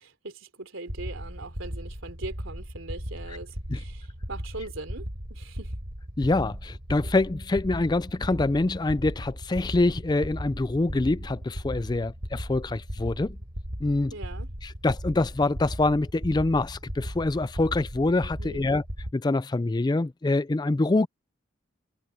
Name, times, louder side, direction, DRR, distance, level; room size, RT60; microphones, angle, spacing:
voice 1, 0.0-5.7 14.1-14.5 18.4-18.8, right 2 dB, 75° right, 3.2 m, -41 dB
sound 1, 0.9-19.1, equal, 55° right, 5.4 m, -37 dB
voice 2, 6.2-13.4 13.8-14.1 14.6-18.8 19.1-21.1, left 2 dB, 20° left, 0.3 m, -25 dB
head